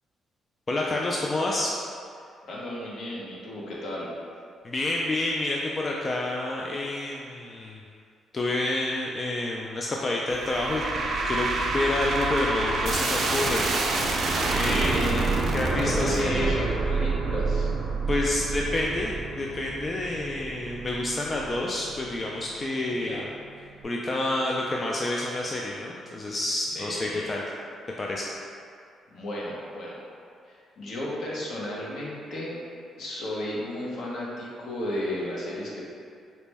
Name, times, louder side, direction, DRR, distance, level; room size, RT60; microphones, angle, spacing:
voice 1, 0.7-1.7 4.6-7.8 8.3-14.0 14.5-15.0 15.2-16.6 18.1-23.3 23.8-27.4 28.0-28.4, left 2 dB, 30° left, -2 dB, 0.3 m, -29 dB
voice 2, 2.4-4.1 14.6-17.7 22.9-23.2 26.7-27.4 29.1-30.0 30.5-32.6 33.0-35.9, left 1 dB, 65° left, -5 dB, 0.9 m, -33 dB
sound 1, 10.3-21.6, right 3 dB, 60° right, 0.4 m, -27 dB
sound 2, 15.6-26.5, right 2 dB, 10° right, 0.6 m, -41 dB
4.0 x 2.1 x 3.3 m, 2.4 s
cardioid pair, 90°, 0 cm